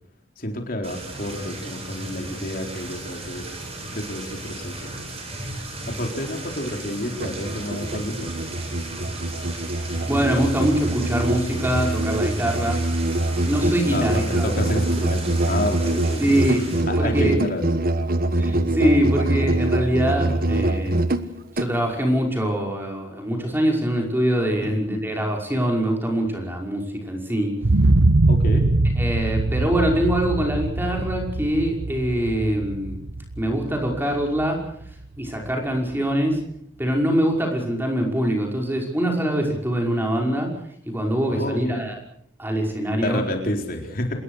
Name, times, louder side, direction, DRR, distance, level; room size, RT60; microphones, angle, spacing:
voice 1, 0.4-3.5 3.9-4.9 5.9-8.3 13.9-16.2 16.9-17.7 24.6-25.0 28.3-28.7 41.3-41.9 43.0-44.1, left 1 dB, 50° left, 3 dB, 4.2 m, -29 dB
sound 1, 0.8-16.8, right 2 dB, 30° right, 8.0 m, -35 dB
Musical instrument, 7.1-21.7, right 1 dB, 50° right, 1.3 m, -24 dB
voice 2, 10.1-12.8 13.4-14.5 16.2-16.6 17.0-17.4 18.3-21.0 21.6-27.6 29.0-33.0 33.4-34.6 35.2-36.4 36.8-40.5 40.9-42.0 42.4-43.2, equal, 10° right, 1 dB, 5.6 m, -23 dB
sound 2, 27.6-35.5 35.9-36.0, right 2 dB, 85° right, 1.1 m, -22 dB
27.5 x 21.0 x 6.6 m, 0.69 s
head